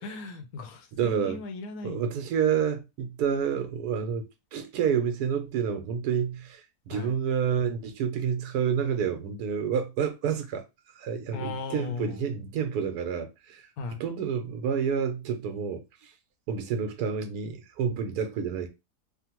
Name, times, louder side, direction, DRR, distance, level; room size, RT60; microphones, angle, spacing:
voice 1, 0.0-2.1 6.9-7.1 11.3-12.2 13.8-14.0, left 3 dB, 75° left, 1.0 m, -37 dB
voice 2, 1.0-1.4 1.8-4.2 4.5-10.6 11.0-13.7 14.0-15.8 16.5-18.7, right 7 dB, 75° right, 1.2 m, -29 dB
3.4 x 2.0 x 2.9 m
omnidirectional pair, 1.7 m